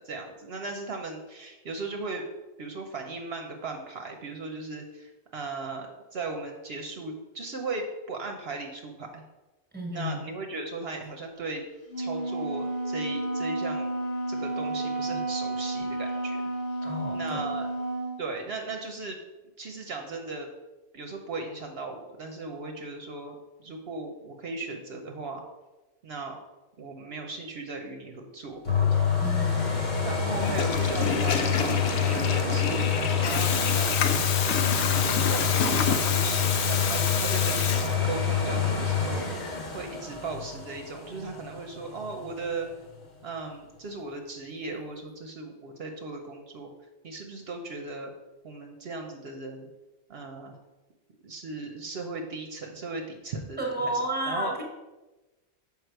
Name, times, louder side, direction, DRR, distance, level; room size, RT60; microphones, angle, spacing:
voice 1, 0.0-2.2 2.6-9.2 9.9-11.6 12.0-13.9 14.3-16.4 17.1-17.7 18.2-19.2 19.6-20.5 20.9-25.4 26.0-26.4 26.8-28.6 28.9-29.2 30.0-32.9 33.1-34.0 34.6-37.7 38.0-39.5 39.7-42.7 43.2-46.7 47.0-48.1 48.4-49.7 50.1-50.5 51.2-54.5, right 3 dB, 65° right, 3 dB, 1.0 m, -37 dB
voice 2, 9.7-10.2 16.8-17.4 29.2-29.8 53.6-54.6, right 1 dB, 10° right, 0 dB, 1.3 m, -31 dB
Wind instrument woodwind instrument, 11.9-18.2, right 2 dB, 90° left, 1.8 m, -31 dB
sound 1, 28.6-42.3 42.9-43.0, left 6 dB, 40° left, 1.2 m, -27 dB
Water tap faucet / Toilet flush, 30.3-38.3, left 6 dB, 70° left, 0.9 m, -29 dB
6.5 x 5.2 x 4.6 m, 1.1 s
omnidirectional pair, 1.2 m